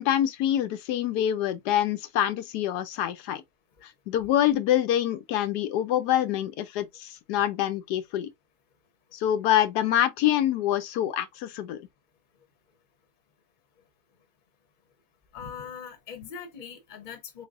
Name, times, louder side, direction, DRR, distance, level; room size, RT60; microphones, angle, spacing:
voice 1, 0.0-3.4 3.8-8.3 9.1-11.8, left 11 dB, 80° left, 1.2 m, -26 dB
voice 2, 15.3-17.5, left 7 dB, 35° left, 0.9 m, -41 dB
4.0 x 3.2 x 2.4 m
omnidirectional pair, 1.7 m